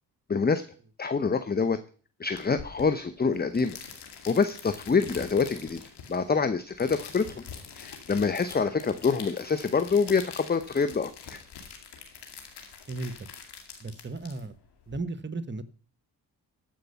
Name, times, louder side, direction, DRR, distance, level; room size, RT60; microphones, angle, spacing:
voice 1, 0.3-0.6 1.0-1.8 2.2-3.8 4.3-5.8 6.1-7.4 7.7-11.4, left 5 dB, 25° left, 12 dB, 0.8 m, -26 dB
sound 1, 2.4-15.0, left 6 dB, 80° left, 2.3 m, -45 dB
voice 2, 12.9-13.3 13.8-14.5 14.9-15.6, right 3 dB, 30° right, 12 dB, 1.2 m, -35 dB
13.5 x 5.3 x 6.9 m, 0.42 s
supercardioid pair, 55°, 40 cm